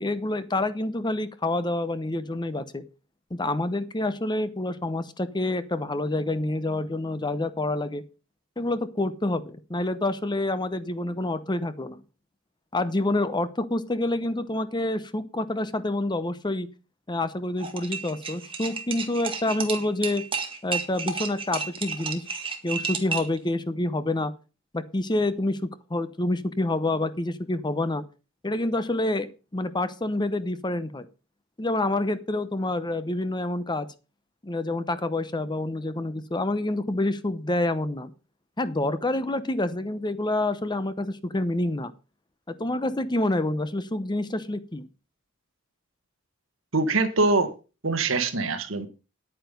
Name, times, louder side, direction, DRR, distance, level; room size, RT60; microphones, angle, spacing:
voice 1, 0.0-2.8 3.3-8.0 8.6-12.0 12.7-16.7 17.1-20.2 20.6-22.2 22.6-24.3 24.7-25.6 25.9-28.0 28.4-31.1 31.6-33.9 34.4-38.1 38.6-41.9 42.5-44.9, left 2 dB, 20° left, 0.8 m, -27 dB
sound 1, 17.6-23.4, right 5 dB, 25° right, 1.8 m, -32 dB
voice 2, 46.7-47.5 47.8-48.9, right 3 dB, 65° right, 1.6 m, -23 dB
10.0 x 9.2 x 5.2 m
head